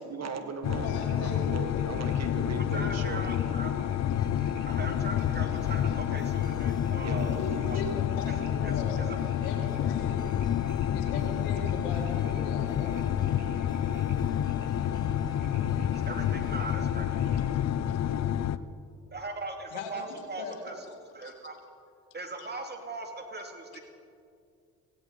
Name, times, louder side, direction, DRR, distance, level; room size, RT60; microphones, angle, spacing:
voice 1, 0.0-3.2 7.0-8.0, right 4 dB, 50° right, 6 dB, 1.9 m, -39 dB
sound 1, 0.6-18.6, left 10 dB, 50° left, 0.6 m, -29 dB
voice 2, 0.8-1.5 1.7-1.8 7.3-10.3 10.9-13.1 19.7-20.6 21.2-21.3 22.4-22.5, left 3 dB, 85° left, 3 dB, 2.0 m, -39 dB
sound 2, 1.0-17.4, right 6 dB, 70° right, 2.3 m, -57 dB
voice 3, 2.7-3.7 4.7-7.8 8.6-9.0 15.9-17.1 19.1-21.6 22.1-23.8, right 2 dB, 30° right, 3 dB, 2.5 m, -40 dB
sound 3, 4.1-16.8, left 4 dB, 15° left, 0.4 m, -47 dB
17.0 x 16.5 x 4.0 m, 2.3 s
hypercardioid pair, 55°, 33 cm